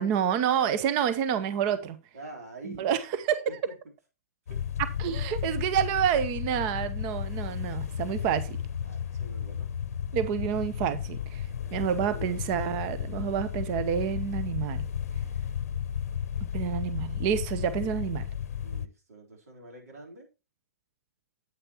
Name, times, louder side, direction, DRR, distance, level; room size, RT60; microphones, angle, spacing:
voice 1, 0.0-2.0 2.6-3.6 5.0-8.6 10.1-11.4 11.7-14.9 16.4-18.2, right 9 dB, 35° right, 0.8 m, -28 dB
voice 2, 2.1-2.9 3.7-3.8 4.5-4.6 8.8-9.7 11.6-12.4 18.6-20.3, right 2 dB, 75° right, 3.6 m, -46 dB
sound 1, 4.5-18.9, left 8 dB, 70° left, 0.7 m, -33 dB
8.7 x 8.3 x 2.9 m
hypercardioid pair, 130°, 8 cm